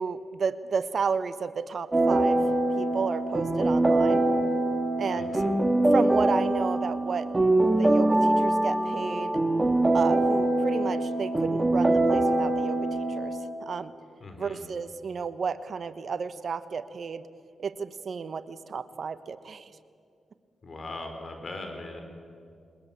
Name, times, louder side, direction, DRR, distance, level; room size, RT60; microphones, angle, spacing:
voice 1, 0.0-2.4 2.8-4.2 5.0-5.4 5.9-7.3 7.7-9.3 9.9-12.8 13.1-13.9 14.4-17.3 17.6-19.7, right 5 dB, 60° right, 13 dB, 1.1 m, -32 dB
sound 1, 1.9-13.5, right 2 dB, 25° right, 1.9 m, -24 dB
voice 2, 5.2-5.5 14.2-14.6 20.6-22.0, left 2 dB, 50° left, 5 dB, 4.5 m, -39 dB
21.0 x 20.0 x 8.9 m, 2.4 s
supercardioid pair, 50°, 0 cm